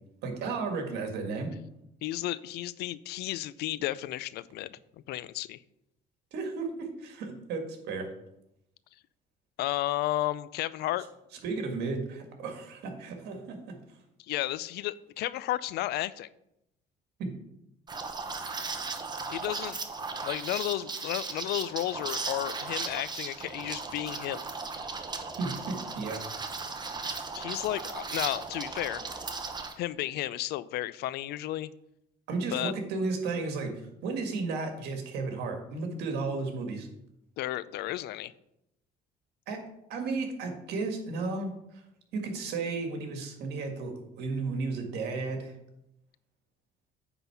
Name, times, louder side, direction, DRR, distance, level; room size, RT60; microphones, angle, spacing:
voice 1, 0.2-1.5 6.3-8.1 11.4-13.8 17.2-17.3 25.4-26.2 32.3-36.9 39.5-41.8 42.1-43.9 44.2-45.5, right 3 dB, 80° right, 4 dB, 1.8 m, -34 dB
voice 2, 2.0-4.8 5.1-5.6 9.6-11.1 14.3-16.3 19.3-19.8 20.2-24.4 27.3-29.2 29.8-31.7 32.5-32.7 37.4-38.3, left 15 dB, 75° left, 17 dB, 0.4 m, -33 dB
Liquid, 17.9-29.7, right 4 dB, 25° right, 0.9 m, -36 dB
9.3 x 4.0 x 5.8 m, 0.82 s
cardioid pair, 110°, 17 cm